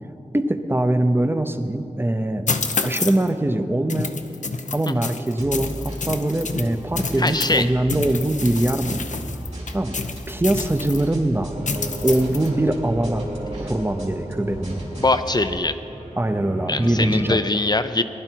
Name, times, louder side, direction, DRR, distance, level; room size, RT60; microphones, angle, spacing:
voice 1, 0.3-2.5 2.8-4.1 4.7-9.1 9.7-10.0 10.3-11.5 12.0-13.3 13.6-14.9 16.2-17.4, right 1 dB, 15° right, 9 dB, 0.7 m, -22 dB
sound 1, 2.5-3.3 3.9-7.6 7.9-11.1 11.7-12.5, left 4 dB, 80° left, 0.7 m, -29 dB
sound 2, 5.4-15.6, right 1 dB, 60° right, 2.9 m, -36 dB
voice 2, 7.2-7.7 15.0-15.8 16.7-18.0, left 2 dB, 35° left, 10 dB, 0.5 m, -22 dB
sound 3, 11.5-17.4, right 1 dB, 90° right, 2.1 m, -34 dB
19.5 x 11.0 x 4.6 m, 2.9 s
wide cardioid pair, 75°, 13 cm